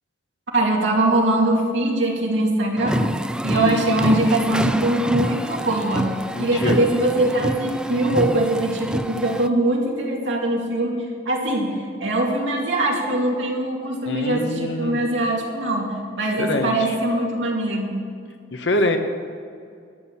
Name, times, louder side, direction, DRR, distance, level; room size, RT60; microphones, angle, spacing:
voice 1, 0.5-3.1 3.4-6.1 6.4-11.0 11.3-18.0, right 1 dB, 70° right, -1 dB, 2.4 m, -22 dB
sound 1, 2.8-9.5, right 1 dB, 5° right, 0.3 m, -27 dB
voice 2, 3.5-3.8 6.3-6.9 14.0-15.0 16.2-16.9 18.5-19.0, left 1 dB, 65° left, 5 dB, 1.2 m, -25 dB
12.0 x 9.0 x 6.8 m, 2.3 s
head